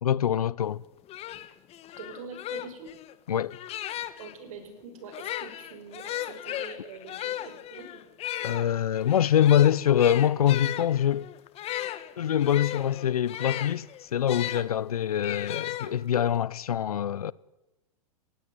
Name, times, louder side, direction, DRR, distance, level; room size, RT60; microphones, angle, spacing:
voice 1, 0.0-0.8 3.3-3.6 8.4-11.3 12.2-13.9 14.1-17.3, left 10 dB, 85° left, 0.7 m, -24 dB
sound 1, 0.7-0.8 1.1-4.3 5.0-14.7 15.2-16.3, left 13 dB, 35° left, 1.4 m, -36 dB
voice 2, 2.0-2.9 4.2-8.2, right 4 dB, 65° right, 5.8 m, -44 dB
20.5 x 16.0 x 9.1 m
hypercardioid pair, 110°, 19 cm